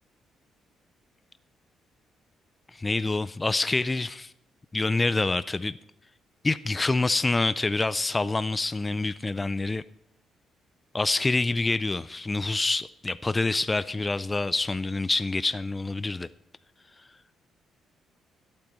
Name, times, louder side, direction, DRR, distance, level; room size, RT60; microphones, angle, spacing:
voice 1, 2.7-4.3 4.7-5.8 6.4-9.8 10.9-16.3, left 3 dB, 20° left, 0.3 m, -26 dB
24.0 x 8.7 x 3.1 m
cardioid pair, 90°, 0 cm